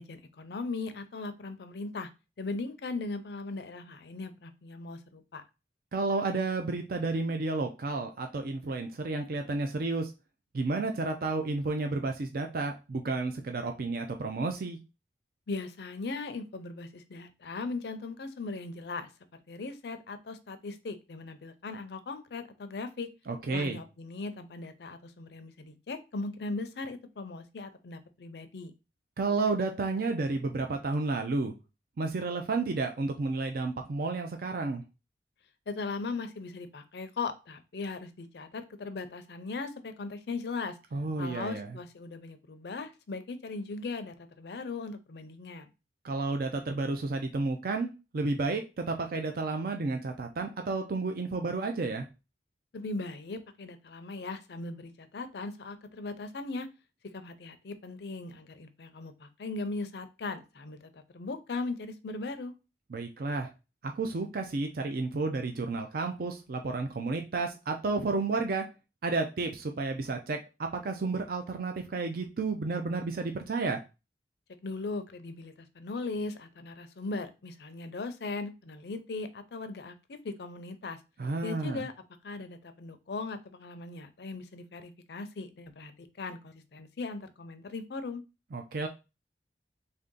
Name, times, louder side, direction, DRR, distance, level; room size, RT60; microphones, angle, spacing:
voice 1, 0.0-2.1 2.4-5.4 15.5-19.1 19.5-23.1 23.5-28.7 35.7-40.8 41.2-45.7 52.7-56.7 57.1-62.5 74.6-81.0 81.4-81.9 82.2-88.2, left 3 dB, 65° left, 9 dB, 0.5 m, -38 dB
voice 2, 5.9-10.1 10.5-14.8 23.3-23.8 29.2-31.5 32.0-34.8 40.9-41.7 46.0-52.1 62.9-63.5 63.8-68.6 69.0-70.4 70.7-73.8 81.2-81.8 88.5-88.9, right 3 dB, 55° right, 5 dB, 0.4 m, -31 dB
3.3 x 2.7 x 3.7 m, 0.28 s
head